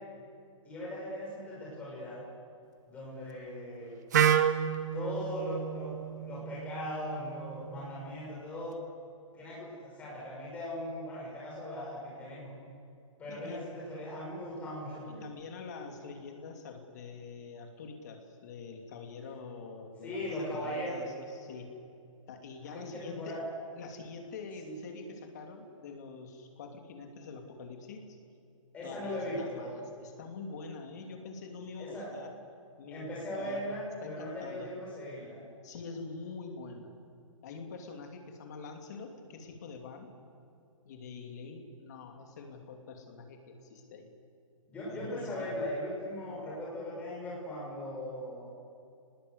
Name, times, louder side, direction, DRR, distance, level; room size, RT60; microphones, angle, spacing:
voice 1, 0.6-2.2 2.9-3.9 4.9-8.7 9.3-12.5 13.2-15.2 20.0-21.1 22.6-23.4 24.6-24.7 28.7-29.7 31.8-32.1 32.9-35.4 44.7-48.5, left 1 dB, 10° left, -5 dB, 6.5 m, -39 dB
Wind instrument woodwind instrument, 4.1-8.0, right 9 dB, 30° right, 1.0 m, -30 dB
voice 2, 13.3-13.7 15.0-21.7 22.3-23.4 23.8-28.2 28.8-32.3 32.8-34.7 35.6-36.9 37.4-40.1 40.8-44.1 44.8-45.7, left 4 dB, 30° left, 4 dB, 2.8 m, -45 dB
29.5 x 20.0 x 8.2 m, 2.5 s
hypercardioid pair, 175°, 17 cm